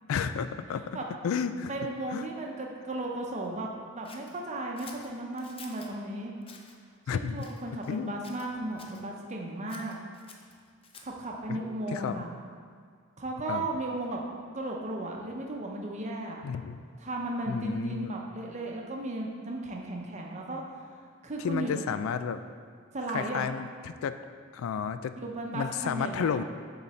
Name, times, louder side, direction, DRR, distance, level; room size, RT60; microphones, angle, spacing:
voice 1, 0.1-1.0 1.2-1.8 2.1-2.3 7.1-7.4 7.9-8.1 11.5-11.6 11.9-12.2 13.5-13.7 16.4-16.8 17.5-18.1 21.4-22.4 23.1-24.2 24.5-25.2 25.5-26.4, left 6 dB, 85° left, 11 dB, 0.3 m, -32 dB
voice 2, 1.7-6.3 7.1-10.0 11.0-12.4 13.2-14.2 14.5-16.4 17.0-20.6 21.2-21.8 22.9-23.4 25.2-26.4, right 2 dB, 35° right, 0 dB, 0.8 m, -35 dB
Scissors, 4.1-5.9 6.4-6.8 7.4-8.0 8.2-9.0 9.7-11.3, left 4 dB, 25° left, 0.5 m, -51 dB
7.2 x 3.9 x 4.2 m, 2.1 s
head